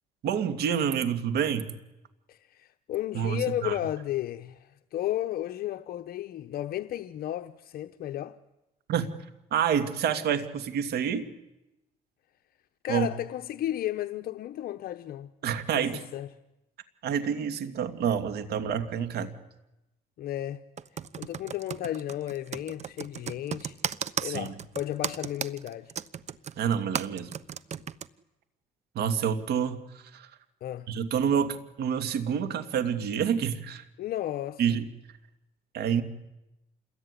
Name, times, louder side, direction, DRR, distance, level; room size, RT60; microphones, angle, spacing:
voice 1, 0.2-1.7 3.1-3.7 8.9-9.1 9.5-11.3 12.9-13.1 15.4-16.0 17.0-19.3 24.2-24.5 26.6-27.3 28.9-29.8 30.1-30.3 30.9-33.8 34.6-34.8 35.7-36.0, right 8 dB, 70° right, 2.6 m, -28 dB
voice 2, 2.3-8.4 12.8-15.3 15.7-16.3 20.2-20.6 21.2-23.8 24.2-25.9 30.6-30.9 34.0-34.6, left 13 dB, 65° left, 1.0 m, -33 dB
Computer keyboard, 20.8-28.1, right 8 dB, 40° right, 1.0 m, -35 dB
27.5 x 21.5 x 10.0 m
cardioid pair, 110°, 17 cm